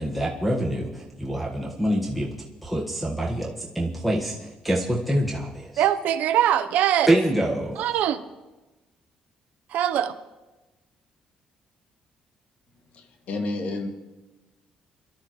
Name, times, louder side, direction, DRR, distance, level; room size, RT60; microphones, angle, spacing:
voice 1, 0.0-5.8 7.1-8.0, right 1 dB, ahead, -4 dB, 1.7 m, -26 dB
voice 2, 5.8-7.1 7.8-8.2 9.7-10.2, right 11 dB, 80° right, 11 dB, 0.9 m, -22 dB
voice 3, 12.9-13.9, left 2 dB, 65° left, 3 dB, 2.4 m, -30 dB
23.5 x 13.0 x 3.2 m, 1.1 s
cardioid pair, 105°, 3 cm